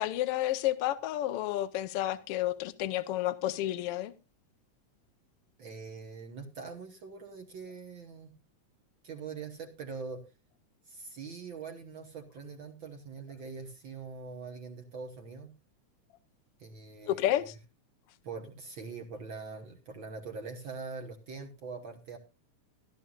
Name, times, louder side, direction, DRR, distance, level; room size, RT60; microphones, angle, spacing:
voice 1, 0.0-4.1 17.1-17.5, left 14 dB, 90° left, 1.3 m, -30 dB
voice 2, 5.6-8.3 9.0-10.2 10.9-15.5 16.6-17.5 18.2-22.2, right 4 dB, 55° right, 1.5 m, -43 dB
15.5 x 12.5 x 2.4 m
omnidirectional pair, 3.5 m